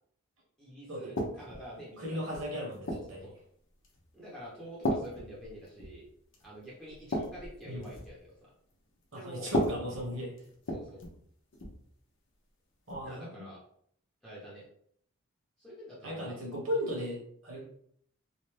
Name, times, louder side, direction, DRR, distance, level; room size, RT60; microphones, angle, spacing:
voice 1, 0.6-2.2 2.9-3.3 4.1-6.1 6.4-8.5 9.1-9.8 10.7-11.0 13.0-13.6 14.2-14.7 15.6-16.4 17.5-17.6, equal, ahead, -8 dB, 1.0 m, -47 dB
sound 1, 1.2-1.7 2.3-3.2 3.8-4.1 4.8-6.0 6.3-6.5 6.9-8.2 9.4-11.2 11.5-11.8 12.9-13.1, equal, 55° left, 0.8 m, -35 dB
voice 2, 2.0-3.3 7.6-7.8 9.1-10.3 12.9-13.5 16.0-17.6, equal, 65° right, -3 dB, 1.4 m, -36 dB
3.2 x 2.5 x 3.3 m, 0.66 s
head